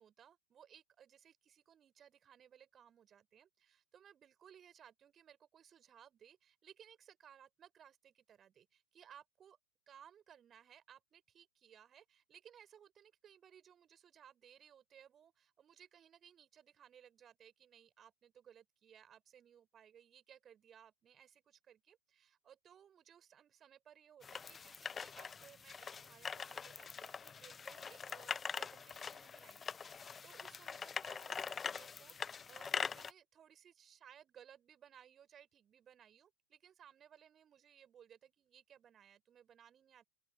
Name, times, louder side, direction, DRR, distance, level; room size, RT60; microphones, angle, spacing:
voice 1, 0.0-9.6 9.9-40.0, right 9 dB, 25° right, 4.1 m, -62 dB
sound 1, 24.2-33.1, left 6 dB, 20° left, 0.6 m, -43 dB
open air
figure-of-eight pair, 90°, 0 cm